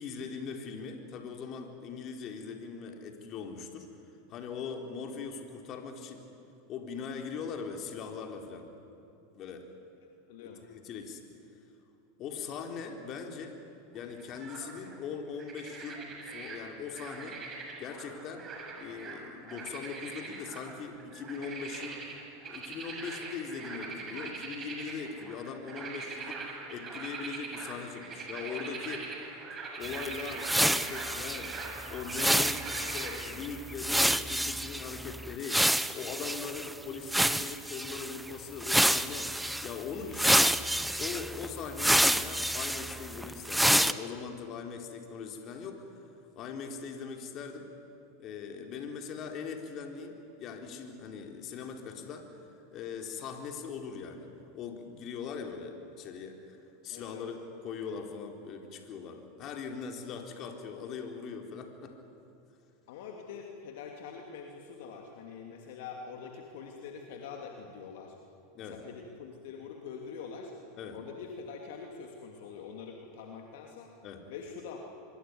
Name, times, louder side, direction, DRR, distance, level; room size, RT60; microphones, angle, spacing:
voice 1, 0.0-3.9 4.3-6.3 6.7-8.7 9.3-9.7 10.4-11.2 12.2-13.6 13.9-17.4 17.8-18.4 18.8-22.0 22.5-26.4 26.7-29.1 29.8-31.5 31.9-35.6 35.9-39.3 39.6-40.5 41.0-45.9 46.4-47.7 48.2-52.4 52.7-54.3 54.5-56.6 56.8-57.4 57.6-62.0 68.5-68.8 70.8-71.0 74.0-74.2, left 6 dB, 45° left, 4 dB, 4.0 m, -40 dB
voice 2, 10.3-10.6 56.9-57.2 62.9-68.2 68.6-70.5 70.9-73.9 74.3-74.8, left 6 dB, 65° left, 2 dB, 2.8 m, -44 dB
sound 1, 14.0-15.0 15.4-16.6 16.9-33.2, right 4 dB, 30° right, 6.8 m, -42 dB
sound 2, 29.8-36.7 37.1-38.2 38.6-39.7 40.1-43.9, right 1 dB, 5° right, 0.9 m, -28 dB
25.5 x 23.0 x 9.7 m, 2.7 s
hypercardioid pair, 90°, 0 cm